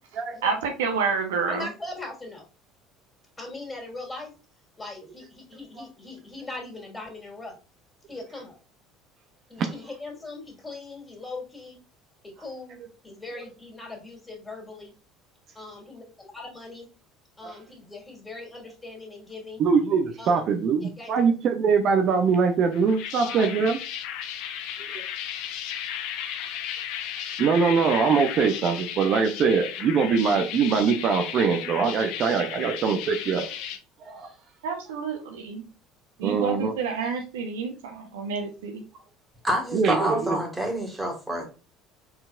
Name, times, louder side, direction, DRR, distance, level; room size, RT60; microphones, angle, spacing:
voice 1, 0.4-1.7 34.6-35.7 36.2-38.8, right 5 dB, 90° right, 1.0 m, -29 dB
voice 2, 1.5-2.4 3.4-4.3 4.8-7.6 8.1-8.6 9.5-11.8 12.2-12.8 13.0-14.9 15.5-16.0 16.3-16.9 17.4-19.6 20.2-20.5 20.8-21.2 23.2-23.5, left 2 dB, 20° left, 2.6 m, -40 dB
voice 3, 19.6-23.8 24.9-25.0 27.4-33.5 34.1-34.3 36.2-36.7 39.7-40.4, right 5 dB, 55° right, 0.7 m, -23 dB
sound 1, 22.7-33.8, left 10 dB, 70° left, 0.7 m, -35 dB
voice 4, 39.4-41.4, right 1 dB, 10° right, 1.9 m, -27 dB
4.4 x 3.9 x 2.5 m
supercardioid pair, 80°, 0 cm